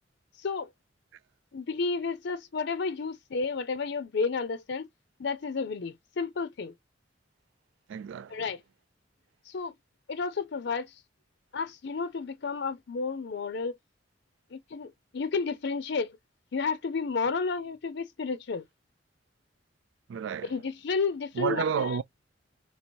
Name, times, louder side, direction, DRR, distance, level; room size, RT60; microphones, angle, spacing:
voice 1, 0.4-0.7 1.5-4.9 5.2-6.7 8.3-8.6 9.5-9.7 10.1-10.9 11.5-13.8 14.5-16.2 16.5-18.6 20.4-22.0, left 4 dB, 65° left, 0.5 m, -31 dB
voice 2, 7.9-8.4 20.1-20.5 21.4-22.0, right 7 dB, 80° right, 0.3 m, -30 dB
3.3 x 2.9 x 4.4 m
head